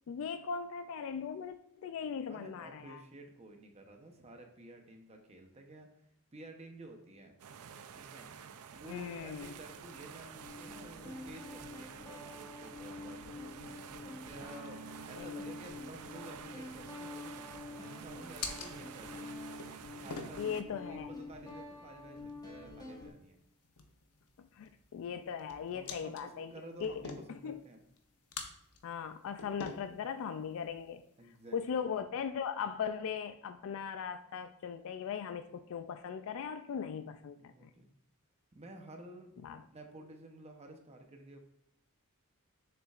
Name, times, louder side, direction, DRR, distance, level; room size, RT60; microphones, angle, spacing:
voice 1, 0.1-3.0 8.9-9.5 15.2-15.3 20.4-21.1 24.4-26.5 26.8-26.9 27.3-27.6 28.8-31.0 31.5-37.7 39.4-39.6, left 7 dB, 65° left, 10 dB, 0.3 m, -39 dB
voice 2, 2.3-5.9 6.3-7.4 7.9-8.3 8.7-13.7 14.2-19.3 20.0-23.4 25.7-27.8 31.2-31.9 37.4-37.9 38.5-39.4 39.7-41.4, right 1 dB, 30° right, 4 dB, 0.8 m, -52 dB
sound 1, 7.4-20.6, right 7 dB, 80° right, 0.5 m, -50 dB
Guitar, 9.4-9.5 10.4-23.1, left 2 dB, 20° left, 1.1 m, -47 dB
sound 2, 16.4-31.8, left 5 dB, 90° left, 0.8 m, -50 dB
6.9 x 6.3 x 2.4 m, 0.75 s
head